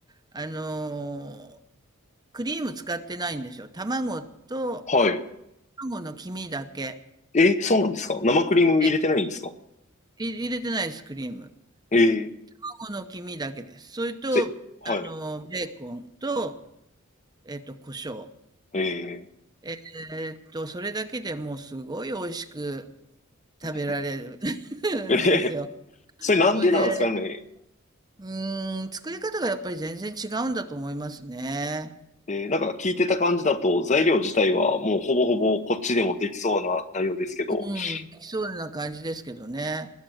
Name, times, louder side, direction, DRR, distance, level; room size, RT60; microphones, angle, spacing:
voice 1, 0.3-1.6 2.3-4.8 5.8-7.0 8.8-8.9 10.2-11.5 12.6-14.5 14.8-16.6 17.4-18.3 19.6-22.9 23.6-25.7 26.2-27.3 28.2-31.9 37.5-39.9, right 2 dB, 20° right, 8 dB, 0.8 m, -32 dB
voice 2, 4.9-5.2 7.3-9.5 11.9-12.3 14.9-15.1 18.7-19.2 23.6-23.7 25.1-25.5 26.2-27.3 32.3-38.0, left 2 dB, 35° left, 9 dB, 0.9 m, -22 dB
20.0 x 7.6 x 9.1 m, 0.82 s
head